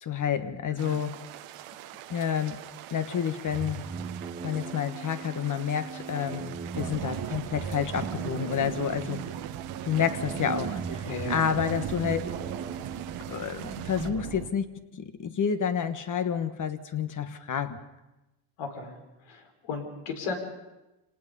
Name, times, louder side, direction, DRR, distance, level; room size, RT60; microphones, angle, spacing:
voice 1, 0.0-1.2 2.1-2.6 2.9-3.8 4.4-9.2 9.8-11.0 11.3-12.2 13.3-14.6 14.9-17.8, left 8 dB, 40° left, 9 dB, 1.5 m, -29 dB
voice 2, 0.7-1.0 9.0-9.1 11.0-11.6 18.6-19.0 19.2-20.4, left 4 dB, 80° left, 3 dB, 4.5 m, -36 dB
sound 1, 0.8-14.1, right 13 dB, 85° right, 1.3 m, -45 dB
sound 2, 3.4-13.4, right 5 dB, 15° right, 1.1 m, -39 dB
sound 3, 6.7-14.5, right 10 dB, 55° right, 1.2 m, -37 dB
26.5 x 19.0 x 5.4 m, 1.0 s
cardioid pair, 120°, 48 cm